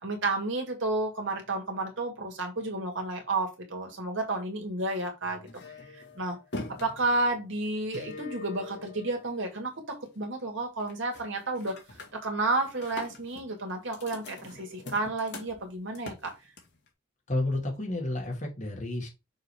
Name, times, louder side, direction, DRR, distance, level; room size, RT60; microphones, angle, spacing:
voice 1, 0.0-5.5 6.1-6.4 6.7-11.8 12.1-16.3, right 2 dB, 60° right, 2.4 m, -31 dB
sound 1, 5.2-9.7 10.1-10.5 10.8-11.2 11.5-16.9, left 2 dB, 55° left, 2.1 m, -43 dB
voice 2, 17.3-19.1, left 2 dB, 35° left, 2.3 m, -31 dB
6.4 x 3.9 x 4.8 m
head